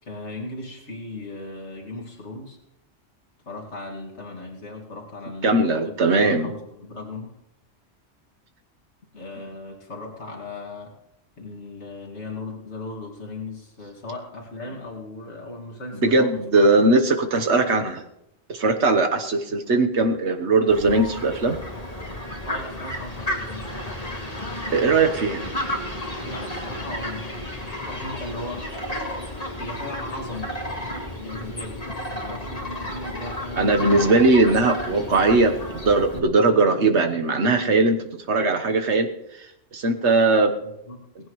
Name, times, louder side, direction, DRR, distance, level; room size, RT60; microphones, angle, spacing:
voice 1, 0.0-2.6 3.5-7.3 9.1-10.9 11.4-16.7 22.4-23.7 26.2-27.4 27.9-28.7 29.6-30.5 31.1-31.9 32.1-34.1 37.6-37.8 40.9-41.0, left 2 dB, 80° left, -1 dB, 2.5 m, -37 dB
voice 2, 5.4-6.5 9.4-9.5 14.7-14.8 15.9-18.0 18.5-21.6 24.7-25.4 33.5-39.1 39.7-40.5, right 3 dB, 80° right, 6 dB, 1.5 m, -20 dB
Fowl, 20.7-36.2, left 1 dB, 35° left, 2.0 m, -32 dB
18.5 x 15.5 x 3.2 m, 0.84 s
omnidirectional pair, 1.1 m